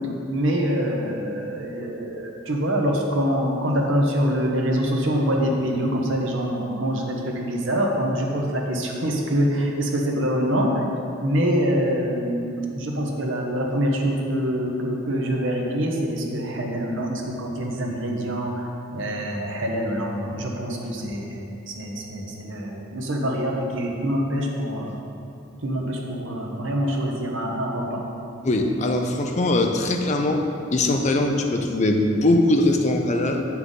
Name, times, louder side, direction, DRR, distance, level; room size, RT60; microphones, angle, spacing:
voice 1, 0.3-10.8 11.2-24.9 25.6-28.0, equal, 65° right, 0 dB, 1.0 m, -25 dB
voice 2, 28.4-30.4 30.7-33.4, left 2 dB, 35° left, 3 dB, 0.5 m, -21 dB
7.8 x 5.8 x 3.8 m, 2.7 s
head